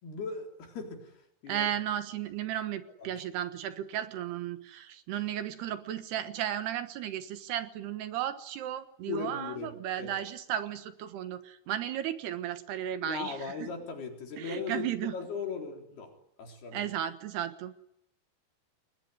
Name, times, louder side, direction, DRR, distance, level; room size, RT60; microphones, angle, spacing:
voice 1, 0.0-1.2 1.4-1.7 3.0-3.2 9.1-10.1 13.0-16.1 16.4-16.8, left 5 dB, 60° left, 3 dB, 5.8 m, -38 dB
voice 2, 1.5-13.7 14.4-15.2 16.7-17.9, right 11 dB, 70° right, 11 dB, 3.1 m, -34 dB
28.5 x 21.5 x 9.5 m, 0.79 s
omnidirectional pair, 5.4 m